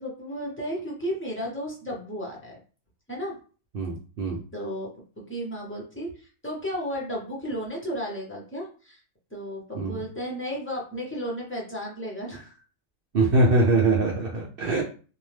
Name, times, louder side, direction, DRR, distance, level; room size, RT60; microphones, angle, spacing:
voice 1, 0.0-2.6 3.1-3.4 4.5-4.9 5.2-9.0 9.3-12.6, equal, 15° left, -3 dB, 0.5 m, -33 dB
voice 2, 3.7-4.4 9.7-10.0 13.1-14.8, right 2 dB, 60° right, -2 dB, 0.6 m, -22 dB
2.7 x 2.1 x 3.2 m, 0.38 s
omnidirectional pair, 1.5 m